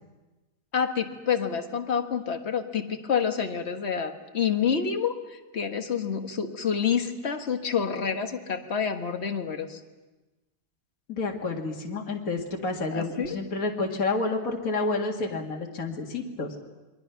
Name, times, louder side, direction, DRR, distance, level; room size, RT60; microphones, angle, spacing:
voice 1, 0.7-9.8 12.9-13.4, left 7 dB, 45° left, 5 dB, 1.7 m, -28 dB
voice 2, 11.1-16.6, left 3 dB, 60° left, 0 dB, 2.4 m, -29 dB
28.5 x 23.0 x 5.8 m, 1.1 s
omnidirectional pair, 1.7 m